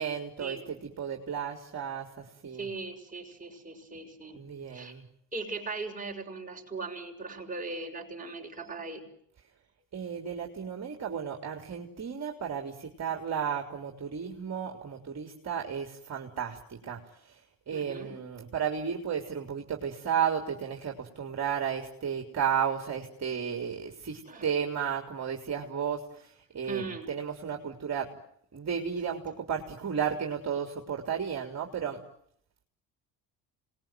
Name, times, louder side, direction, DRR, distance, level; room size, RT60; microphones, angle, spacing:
voice 1, 0.0-2.7 4.3-5.0 9.9-17.4 17.7-28.1 28.5-32.0, right 7 dB, 40° right, 3 dB, 3.8 m, -33 dB
voice 2, 2.6-4.4 4.7-4.9 5.3-9.0 17.7-18.2 24.3-24.5 26.6-27.1, right 3 dB, 20° right, 1 dB, 6.8 m, -39 dB
26.5 x 20.5 x 9.4 m, 0.70 s
supercardioid pair, 80°, 40 cm